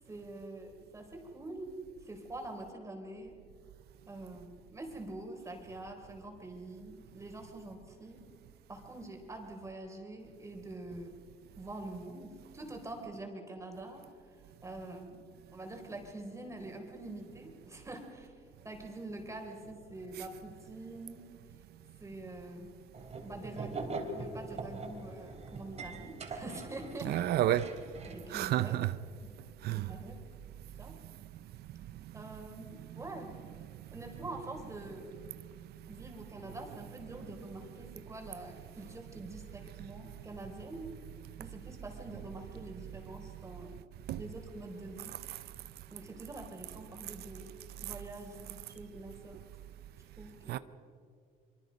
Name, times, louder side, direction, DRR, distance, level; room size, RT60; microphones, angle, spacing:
voice 1, 0.1-1.7 2.0-3.4 4.1-8.2 8.7-11.1 11.6-14.4 14.6-15.2 15.5-21.2 22.0-22.7 23.2-27.2 28.1-28.8 29.2-29.3 29.7-30.2 30.8-31.0 32.1-33.3 33.9-35.1 35.9-40.9 41.4-43.8 44.2-45.2 45.9-49.4 50.2-50.6, right 2 dB, 15° right, 4.2 m, -45 dB
sound 1, 22.9-28.3, right 3 dB, 40° right, 3.6 m, -42 dB
voice 2, 27.1-27.7 28.3-28.9 29.6-29.9 44.1-44.2 50.5-50.6, right 13 dB, 70° right, 0.8 m, -30 dB
26.0 x 24.0 x 5.4 m
cardioid pair, 110°, 17 cm